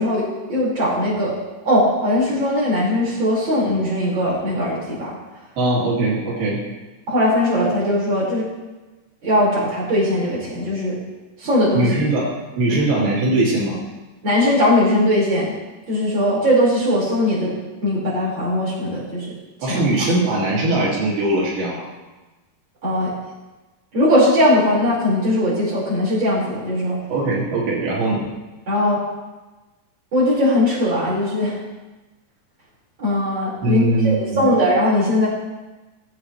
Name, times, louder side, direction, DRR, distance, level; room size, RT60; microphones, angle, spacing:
voice 1, 0.0-1.3 1.6-5.1 7.1-8.5 9.2-11.0 11.4-11.9 12.7-12.8 14.2-15.5 15.9-17.5 17.8-19.3 19.6-20.1 22.8-23.1 23.9-27.0 28.7-29.0 30.1-31.6 33.0-35.3, left 1 dB, 30° right, -7 dB, 5.4 m, -19 dB
voice 2, 5.6-6.6 11.7-13.8 19.6-21.9 27.1-28.3 33.6-34.5, right 2 dB, 85° right, -5 dB, 4.3 m, -20 dB
20.5 x 8.2 x 3.2 m, 1.2 s
omnidirectional pair, 4.3 m